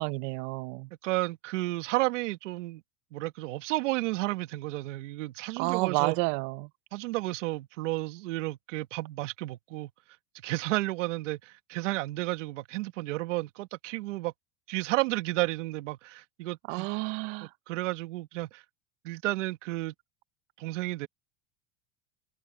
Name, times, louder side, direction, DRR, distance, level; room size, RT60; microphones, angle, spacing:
voice 1, 0.0-0.9 5.6-6.7 16.7-17.5, right 26 dB, 60° right, 0.9 m, -30 dB
voice 2, 1.0-2.8 3.1-6.2 6.9-9.9 10.4-14.3 14.7-16.9 17.4-18.6 19.0-19.9 20.6-21.1, right 19 dB, 80° right, 1.8 m, -32 dB
supercardioid pair, 115°, 37 cm